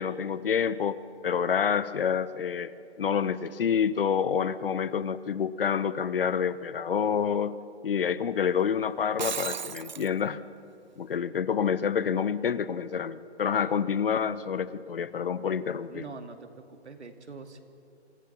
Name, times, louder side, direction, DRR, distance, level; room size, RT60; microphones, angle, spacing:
voice 1, 0.0-10.4 11.0-16.0, left 7 dB, 55° left, 16 dB, 0.9 m, -28 dB
Shatter, 9.0-10.1, right 6 dB, 45° right, 0.4 m, -34 dB
voice 2, 15.9-17.6, right 4 dB, 75° right, 6 dB, 2.4 m, -44 dB
26.0 x 15.5 x 7.3 m, 2.5 s
hypercardioid pair, 160°, 34 cm